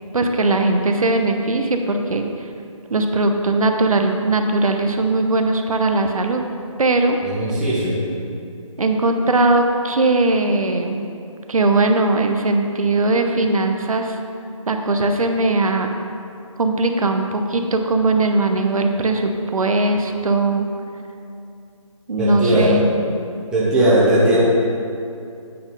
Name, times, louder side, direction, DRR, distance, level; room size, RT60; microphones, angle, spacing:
voice 1, 0.1-2.3 2.9-6.4 6.8-7.2 8.8-11.0 11.5-14.2 14.7-15.9 16.6-20.7 22.1-22.8, right 2 dB, 80° right, 4 dB, 0.8 m, -19 dB
voice 2, 7.2-8.0 22.2-22.8 23.5-24.4, right 1 dB, 5° right, -9 dB, 0.9 m, -17 dB
8.6 x 4.3 x 5.4 m, 2.5 s
figure-of-eight pair, 160°, 18 cm